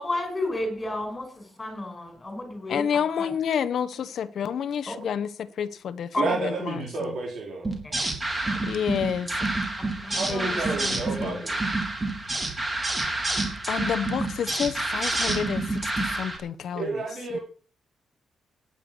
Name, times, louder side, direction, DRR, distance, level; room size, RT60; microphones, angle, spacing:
voice 1, 0.0-2.9 3.2-3.3 4.9-5.0 6.1-6.2 8.4-8.6 10.0-10.8, left 2 dB, 20° left, 6 dB, 5.8 m, -32 dB
voice 2, 2.7-7.2 8.6-9.3 10.1-10.6 10.8-11.4 13.7-17.0 17.3-17.4, left 8 dB, 60° left, 12 dB, 1.1 m, -29 dB
voice 3, 6.2-7.7 10.1-11.6 16.7-17.4, right 3 dB, 55° right, 0 dB, 4.0 m, -30 dB
sound 1, 7.6-16.4, right 2 dB, 20° right, 3.9 m, -28 dB
18.0 x 9.9 x 6.2 m, 0.44 s
cardioid pair, 145°, 0 cm